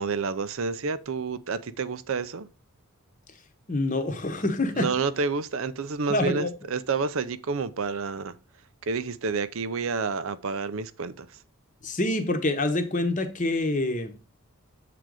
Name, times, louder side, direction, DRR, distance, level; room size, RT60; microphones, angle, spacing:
voice 1, 0.0-2.5 4.8-8.3 8.8-11.4, right 4 dB, 65° right, 0.5 m, -29 dB
voice 2, 3.7-4.9 6.1-6.5 11.8-14.1, left 2 dB, 35° left, 1.0 m, -26 dB
7.6 x 3.9 x 4.7 m
head